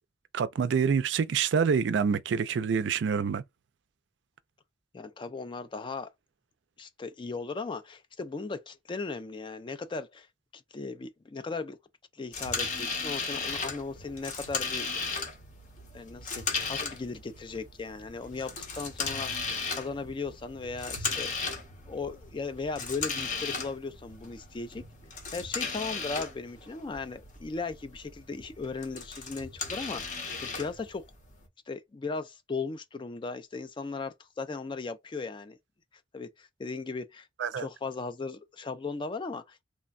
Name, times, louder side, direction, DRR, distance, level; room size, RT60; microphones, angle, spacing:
voice 1, 0.3-3.4 37.4-37.7, right 6 dB, 70° right, 0.4 m, -26 dB
voice 2, 4.9-6.1 6.8-10.3 10.5-11.8 12.1-14.9 15.9-16.4 16.7-19.5 19.7-21.3 21.9-24.8 25.3-31.1 31.7-35.6 36.1-39.6, left 4 dB, 25° left, 0.3 m, -37 dB
sound 1, 12.3-31.5, left 4 dB, 45° left, 0.8 m, -36 dB
3.3 x 2.1 x 2.4 m
head